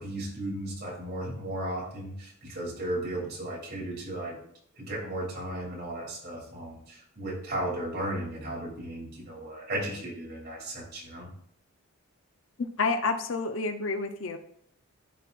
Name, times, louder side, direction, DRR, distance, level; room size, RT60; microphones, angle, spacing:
voice 1, 0.0-4.4 4.7-11.3, right 1 dB, 45° right, -4 dB, 2.6 m, -35 dB
voice 2, 12.8-14.4, left 4 dB, 60° left, 8 dB, 0.6 m, -29 dB
12.5 x 4.2 x 2.4 m, 0.65 s
head